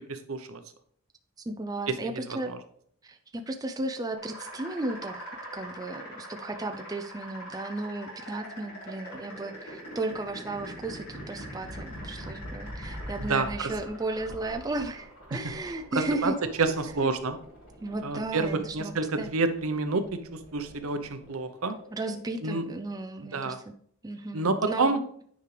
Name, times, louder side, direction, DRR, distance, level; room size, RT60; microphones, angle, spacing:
voice 1, 0.1-0.6 1.9-2.6 13.2-13.7 15.3-15.4 15.9-16.3 16.6-17.4 18.0-20.0 20.3-21.8 22.4-22.6 23.2-23.6 24.3-25.0, right 3 dB, 70° right, 8 dB, 0.8 m, -29 dB
voice 2, 1.5-2.5 3.0-5.3 5.5-16.3 17.0-17.1 17.8-19.3 21.9-23.7 24.0-24.9, right 2 dB, 15° right, 5 dB, 0.4 m, -35 dB
sound 1, 4.2-22.9, equal, 80° left, 3.5 m, -43 dB
9.6 x 5.0 x 3.3 m, 0.63 s
head